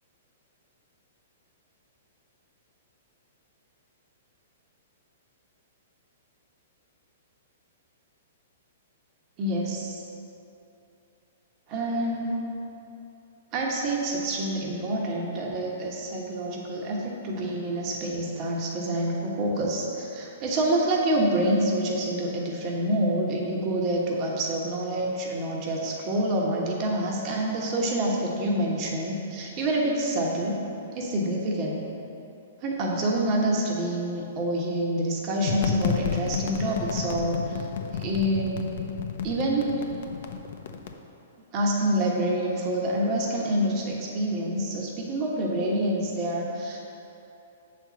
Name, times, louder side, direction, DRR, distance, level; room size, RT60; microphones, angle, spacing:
voice 1, 9.4-10.0 11.7-12.5 13.5-30.6 30.9-31.8 32.6-37.6 38.0-38.7 39.2-39.8 41.5-46.8, right 1 dB, 40° right, -2 dB, 1.3 m, -27 dB
sound 1, 35.4-40.9, left 7 dB, 65° left, 0.6 m, -31 dB
7.5 x 4.3 x 6.2 m, 2.9 s
hypercardioid pair, 130°, 0 cm